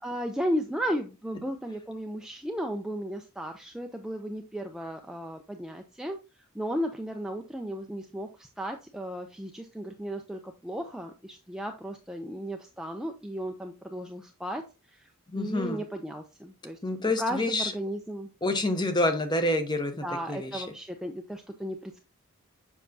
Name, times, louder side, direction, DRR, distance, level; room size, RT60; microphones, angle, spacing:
voice 1, 0.0-6.2 6.5-15.1 15.3-16.8 17.2-18.3 20.0-22.0, equal, 5° right, 3 dB, 0.4 m, -35 dB
voice 2, 15.3-15.8 16.8-17.7 18.4-19.9 20.3-20.6, left 1 dB, 20° left, 7 dB, 0.8 m, -27 dB
7.2 x 5.7 x 2.7 m, 0.28 s
head